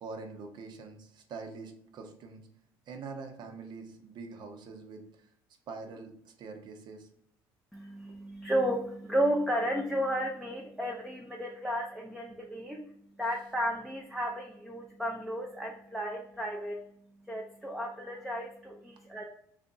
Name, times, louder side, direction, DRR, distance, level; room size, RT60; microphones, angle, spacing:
voice 1, 0.0-2.4 2.9-5.3 5.7-7.1 8.1-8.2, right 4 dB, 55° right, 5 dB, 0.8 m, -44 dB
voice 2, 7.7-12.8 13.2-16.8 17.2-19.2, equal, ahead, -1 dB, 0.6 m, -33 dB
3.4 x 2.5 x 3.9 m, 0.71 s
supercardioid pair, 95°, 9 cm